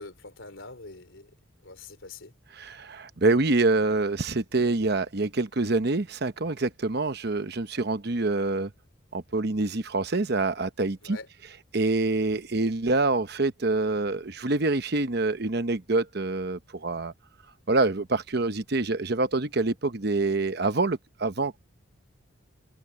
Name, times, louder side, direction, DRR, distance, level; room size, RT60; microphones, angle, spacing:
voice 1, 0.0-1.3 1.6-2.3 11.0-11.3, left 3 dB, 70° left, 3.4 m, -44 dB
voice 2, 2.6-8.7 9.1-11.2 11.7-17.1 17.7-21.6, right 2 dB, 55° right, 1.0 m, -26 dB
head